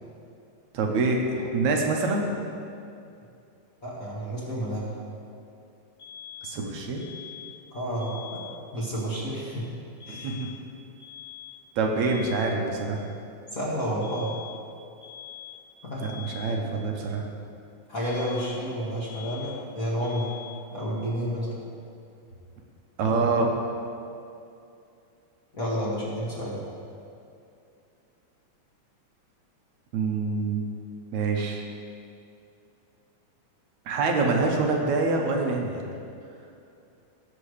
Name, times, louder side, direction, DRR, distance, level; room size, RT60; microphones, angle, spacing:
voice 1, 0.7-2.4 6.4-7.0 10.2-10.5 11.8-13.1 16.0-17.3 23.0-23.6 29.9-30.6 31.1-31.7 33.9-35.8, right 3 dB, 65° right, 1 dB, 2.1 m, -25 dB
voice 2, 3.8-5.0 7.7-8.4 8.7-9.6 10.1-10.3 13.5-14.3 15.8-16.1 17.9-20.3 20.7-21.6 25.5-26.6, equal, 30° left, -7 dB, 2.0 m, -30 dB
sound 1, 6.0-6.7 7.0-7.7 8.0-8.7 10.0-10.7 11.0-11.7 12.0-12.7 14.0-14.7 15.0-15.7 16.0-16.7 18.0-18.7 19.0-19.7 20.0-20.7, left 10 dB, 60° left, 3.1 m, -44 dB
18.5 x 7.8 x 3.4 m, 2.6 s
omnidirectional pair, 4.0 m